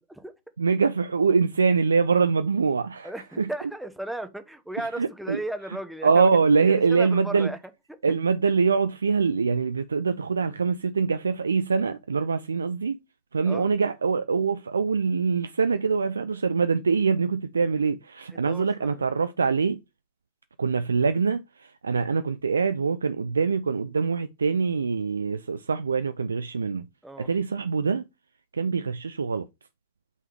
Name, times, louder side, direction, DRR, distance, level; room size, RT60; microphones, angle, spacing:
voice 1, 0.6-3.1 3.4-3.5 5.0-5.4 6.0-7.5 8.0-13.0 13.3-19.8 20.6-26.9 27.2-28.1 28.5-29.5, right 5 dB, 75° right, 0.4 m, -24 dB
voice 2, 3.0-6.3 6.7-7.6 13.4-13.7 18.3-19.0 27.0-27.3, right 1 dB, 5° right, 0.9 m, -35 dB
8.5 x 3.6 x 3.4 m
figure-of-eight pair, 90°, 0 cm